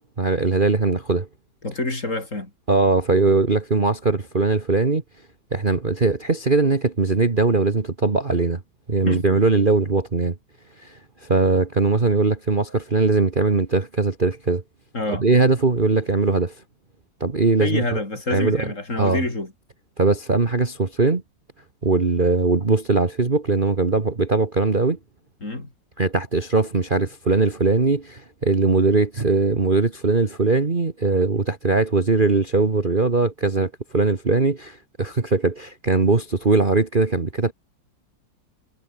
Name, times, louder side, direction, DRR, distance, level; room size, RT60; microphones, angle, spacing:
voice 1, 0.2-1.3 2.7-5.0 5.5-8.6 8.9-10.3 10.8-14.6 15.1-16.5 17.2-18.0 18.3-18.6 19.0-19.2 20.0-21.2 21.8-25.0 26.0-37.5, right 3 dB, 30° right, 1.7 m, -20 dB
voice 2, 1.6-2.5 9.1-9.5 14.9-15.2 17.6-19.5 25.4-25.7, left 2 dB, 40° left, 5.1 m, -27 dB
omnidirectional pair, 2.1 m